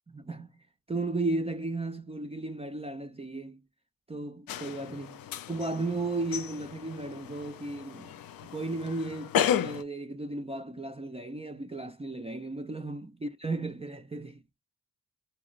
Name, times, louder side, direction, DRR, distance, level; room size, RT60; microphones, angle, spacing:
voice 1, 0.1-0.5 0.9-3.6 4.1-5.2 5.5-8.1 8.4-14.4, right 2 dB, 15° right, 0.4 m, -35 dB
sound 1, 4.5-9.8, left 9 dB, 60° left, 0.5 m, -34 dB
4.1 x 2.0 x 2.4 m
supercardioid pair, 45°, 40 cm